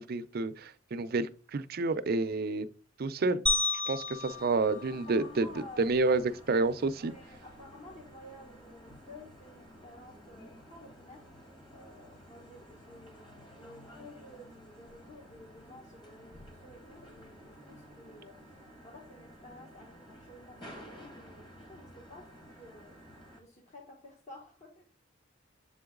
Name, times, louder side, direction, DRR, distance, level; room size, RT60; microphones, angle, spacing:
voice 1, 0.0-2.7 3.0-3.4 3.9-5.5 5.8-6.2 6.5-7.1, right 3 dB, 50° right, 0.5 m, -29 dB
sound 1, 3.5-5.8, left 3 dB, 5° left, 1.0 m, -33 dB
voice 2, 4.0-4.4 5.1-6.2 7.0-11.2 11.7-18.3 18.8-22.9 23.4-24.8, left 1 dB, 40° left, 1.3 m, -52 dB
sound 2, 4.2-23.4, equal, 25° left, 1.7 m, -53 dB
7.5 x 3.9 x 3.6 m
head